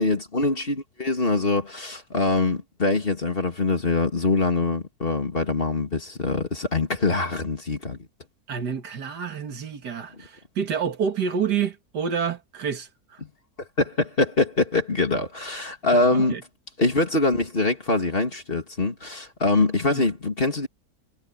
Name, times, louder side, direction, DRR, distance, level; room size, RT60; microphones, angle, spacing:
voice 1, 0.0-8.0 13.8-16.4 16.8-20.7, left 3 dB, 35° left, 2.7 m, -24 dB
voice 2, 8.5-13.2 15.9-16.4 19.9-20.0, right 7 dB, 85° right, 2.3 m, -28 dB
omnidirectional pair, 1.7 m